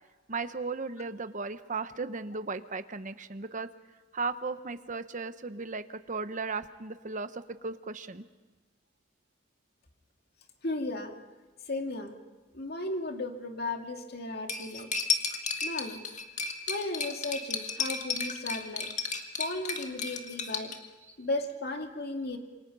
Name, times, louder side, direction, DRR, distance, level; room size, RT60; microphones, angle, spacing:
voice 1, 0.3-3.7 4.1-8.2, right 4 dB, 40° right, 10 dB, 1.0 m, -36 dB
voice 2, 10.6-11.1 11.7-12.1 12.5-14.9 15.6-16.0 16.7-18.9 19.4-20.7 21.2-22.4, left 2 dB, 55° left, 4 dB, 2.5 m, -35 dB
Cutlery silverware, 14.5-20.8, left 4 dB, 40° left, 1.9 m, -33 dB
28.0 x 24.5 x 5.5 m, 1.3 s
head